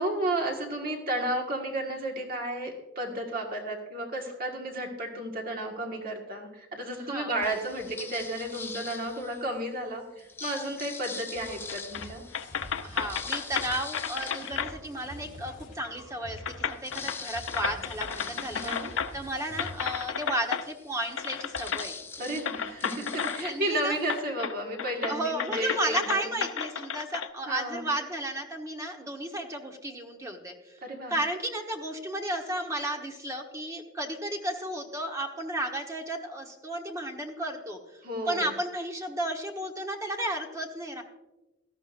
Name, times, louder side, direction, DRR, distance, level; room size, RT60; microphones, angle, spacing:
voice 1, 0.0-12.2 18.5-18.9 22.2-26.4 27.5-27.9 30.8-31.2 38.0-38.5, right 1 dB, 45° right, 1 dB, 1.7 m, -33 dB
sound 1, 7.4-9.6 10.2-15.4 15.8-15.9 16.2-24.2, left 4 dB, 10° left, 0.4 m, -44 dB
sound 2, 11.3-20.0, left 1 dB, 40° left, 4.4 m, -47 dB
sound 3, 11.7-12.1 12.3-14.7 15.8-15.9 16.4-19.3 19.6-20.7 21.2-21.9 22.5-23.7 24.1-24.5 24.8-27.3, left 7 dB, 90° left, 0.6 m, -33 dB
voice 2, 12.8-22.0 23.1-23.9 25.1-30.8 31.1-37.8 38.3-41.0, right 1 dB, 15° right, 2 dB, 1.2 m, -33 dB
17.5 x 13.0 x 2.6 m, 1.0 s
head